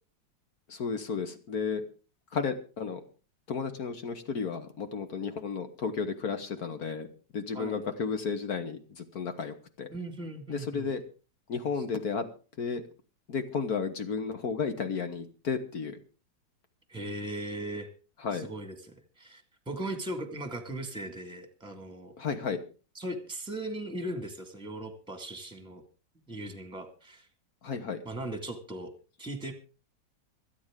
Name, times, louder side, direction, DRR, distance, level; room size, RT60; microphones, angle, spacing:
voice 1, 0.7-1.8 2.3-3.0 3.5-7.1 7.3-9.9 10.5-11.0 11.5-12.3 12.6-12.8 13.3-16.0 18.2-18.5 22.2-22.6 27.6-28.0, left 5 dB, 60° left, 8 dB, 1.7 m, -33 dB
voice 2, 9.9-10.9 16.9-17.9 18.3-18.9 19.2-22.1 23.0-25.8 26.3-27.3 28.1-28.9 29.2-29.5, right 1 dB, 5° right, 7 dB, 1.9 m, -38 dB
26.0 x 9.1 x 3.7 m, 0.36 s
omnidirectional pair, 1.9 m